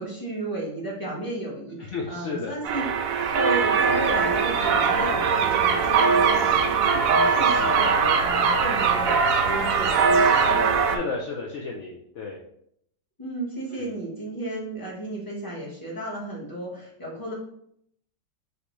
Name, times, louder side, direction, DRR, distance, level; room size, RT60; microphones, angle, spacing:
voice 1, 0.0-10.7 13.2-17.3, right 1 dB, 15° left, -4 dB, 1.1 m, -34 dB
voice 2, 1.9-2.6 10.9-12.4 13.7-13.9, left 4 dB, 70° left, -2 dB, 0.7 m, -33 dB
sound 1, 2.6-11.0, right 5 dB, 70° right, 0.8 m, -21 dB
5.0 x 3.1 x 3.1 m, 0.71 s
omnidirectional pair, 1.9 m